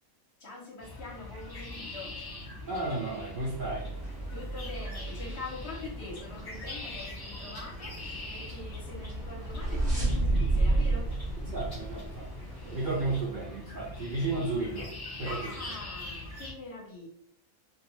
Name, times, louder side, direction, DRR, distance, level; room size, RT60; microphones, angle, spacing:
voice 1, 0.4-2.2 4.3-11.1 12.7-12.8 15.3-17.1, left 3 dB, 55° left, -2 dB, 0.9 m, -44 dB
sound 1, 0.8-16.5, left 2 dB, 40° left, 0.3 m, -43 dB
voice 2, 2.7-3.9 11.4-12.3 12.6-15.5, right 2 dB, 70° right, -3 dB, 0.4 m, -33 dB
sound 2, 3.1-13.2, right 1 dB, ahead, 0.9 m, -43 dB
sound 3, 9.0-12.6, right 2 dB, 35° right, 0.8 m, -28 dB
2.4 x 2.2 x 2.9 m, 0.69 s
omnidirectional pair, 1.5 m